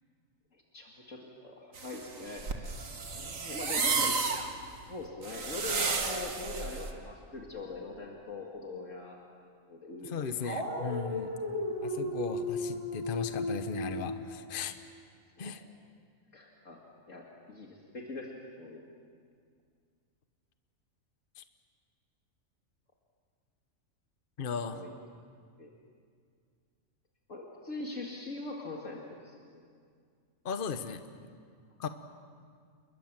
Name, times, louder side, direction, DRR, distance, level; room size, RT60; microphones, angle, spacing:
voice 1, 0.7-2.8 3.1-4.4 4.9-9.2 9.7-10.3 15.4-15.7 16.3-16.8 17.1-18.3 18.6-18.8 24.4-24.9 25.6-25.7 27.3-29.4, left 2 dB, 65° left, -1 dB, 2.5 m, -42 dB
sound 1, 1.8-6.9, right 4 dB, 75° right, 2.0 m, -32 dB
voice 2, 10.0-11.3 11.8-14.7 15.4-15.6 21.4-21.5 24.4-24.8 30.4-31.0 31.8-31.9, left 6 dB, 45° left, 9 dB, 1.1 m, -36 dB
Dog, 10.4-14.1, left 1 dB, 25° right, 5.0 m, -35 dB
29.0 x 22.0 x 7.5 m, 2.1 s
omnidirectional pair, 1.4 m